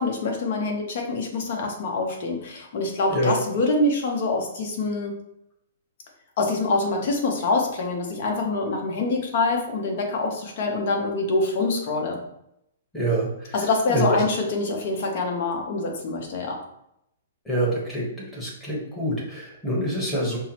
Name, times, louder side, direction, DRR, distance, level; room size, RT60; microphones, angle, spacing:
voice 1, 0.0-5.2 6.4-12.2 13.5-16.6, left 3 dB, 50° left, 2 dB, 0.9 m, -25 dB
voice 2, 12.9-13.5 13.9-14.2 17.4-18.0 18.3-20.4, right 1 dB, 5° left, -5 dB, 1.1 m, -26 dB
5.5 x 2.1 x 2.9 m, 0.79 s
hypercardioid pair, 155°, 0 cm